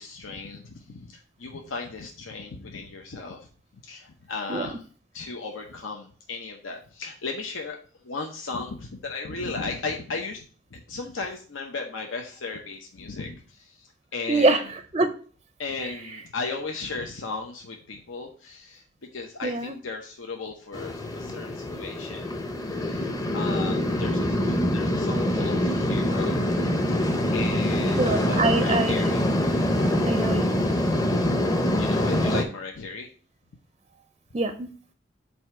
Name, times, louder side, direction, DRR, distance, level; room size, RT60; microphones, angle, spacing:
voice 1, 0.0-3.5 3.8-4.8 5.1-7.8 8.0-10.4 10.7-14.5 15.6-18.8 19.1-22.3 22.8-26.4 27.3-28.0 28.3-29.3 31.8-33.1, left 4 dB, 90° left, 2 dB, 0.7 m, -36 dB
voice 2, 14.3-15.1 15.8-16.2 19.4-19.7 23.8-23.9 28.0-29.0 30.0-30.5 34.3-34.7, right 3 dB, 30° right, 8 dB, 0.4 m, -25 dB
sound 1, 20.7-32.4, left 1 dB, 20° left, 0.6 m, -25 dB
7.7 x 2.8 x 5.9 m, 0.43 s
head